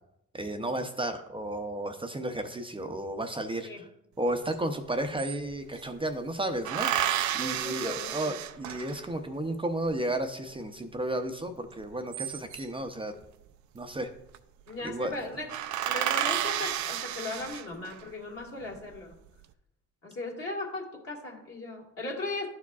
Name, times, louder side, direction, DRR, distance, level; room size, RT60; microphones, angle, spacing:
voice 1, 0.3-3.9 4.2-13.1 13.7-14.1 14.8-15.1, right 1 dB, 15° right, 6 dB, 0.6 m, -33 dB
sound 1, 4.5-4.6 4.8-5.9 6.6-9.2 11.8-12.8 14.0-14.4 14.7-14.8 15.1-15.2 15.5-18.0 18.6-19.3, right 11 dB, 70° right, 0.5 m, -31 dB
voice 2, 7.4-8.3 14.7-15.5 15.9-19.2 20.0-22.5, left 2 dB, 50° left, -1 dB, 2.1 m, -37 dB
11.5 x 4.7 x 2.4 m, 0.81 s
cardioid pair, 90°, 30 cm